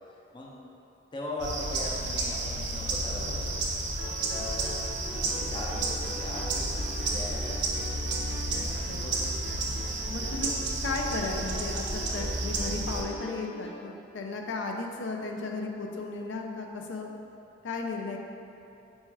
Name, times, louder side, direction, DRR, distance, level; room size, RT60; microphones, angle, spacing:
voice 1, 1.1-3.6 4.2-4.7 5.1-7.7 8.8-9.4, left 1 dB, 25° left, -3 dB, 0.5 m, -39 dB
sound 1, 1.4-13.0, right 2 dB, 70° right, 0.5 m, -31 dB
sound 2, 3.7-13.7, equal, 65° left, 0.8 m, -43 dB
voice 2, 8.5-9.1 10.1-10.5 10.8-17.1 17.6-18.2, left 3 dB, 85° left, 2 dB, 0.4 m, -35 dB
4.2 x 2.3 x 4.5 m, 2.8 s
head